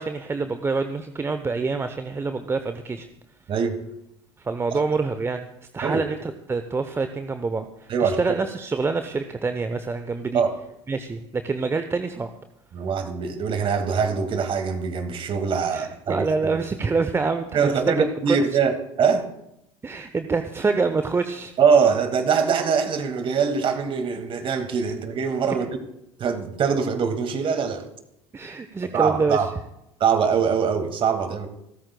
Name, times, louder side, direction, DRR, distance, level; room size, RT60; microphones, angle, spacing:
voice 1, 0.0-3.1 4.4-5.5 5.7-10.4 10.9-12.3 15.7-17.7 18.0-18.4 19.8-21.5 28.3-29.4, right 4 dB, 15° right, 9 dB, 0.8 m, -26 dB
voice 2, 3.5-3.8 5.8-6.0 7.9-8.2 10.3-10.5 12.7-16.2 17.5-19.3 21.6-25.7 26.2-27.9 28.9-29.5 30.0-31.5, right 6 dB, 35° right, 7 dB, 2.1 m, -23 dB
29.0 x 13.5 x 2.3 m, 0.83 s
figure-of-eight pair, 70°, 15 cm